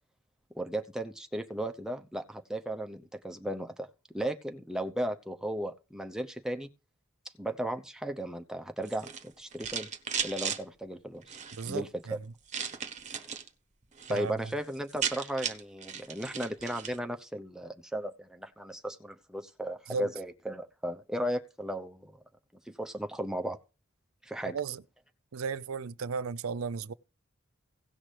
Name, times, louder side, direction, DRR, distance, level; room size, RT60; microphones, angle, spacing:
voice 1, 0.5-3.9 4.1-6.7 7.4-9.9 10.2-11.4 11.6-12.2 13.1-13.3 14.1-22.2 22.7-23.6 24.2-24.6, right 1 dB, 5° right, 0.8 m, -35 dB
sound 1, 8.8-10.6 11.2-11.7 12.5-13.5 13.8-14.2 14.5-14.6 14.8-17.0, right 7 dB, 35° right, 1.0 m, -36 dB
voice 2, 11.6-12.2 14.1-14.3 19.9-20.1 24.5-24.8 25.3-26.9, right 5 dB, 75° right, 0.5 m, -34 dB
17.0 x 6.0 x 3.3 m
head